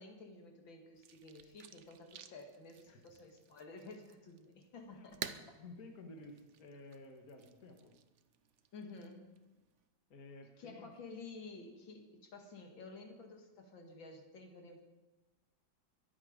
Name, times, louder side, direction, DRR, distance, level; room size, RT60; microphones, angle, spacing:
voice 1, 0.0-5.6 8.7-9.3 10.6-14.8, left 3 dB, 75° left, 3 dB, 2.6 m, -52 dB
sound 1, 1.0-9.9, right 8 dB, 65° right, 0.7 m, -53 dB
voice 2, 5.6-7.9 10.1-10.9, left 2 dB, 50° left, 3 dB, 2.1 m, -53 dB
23.0 x 8.8 x 5.2 m, 1.1 s
omnidirectional pair, 2.1 m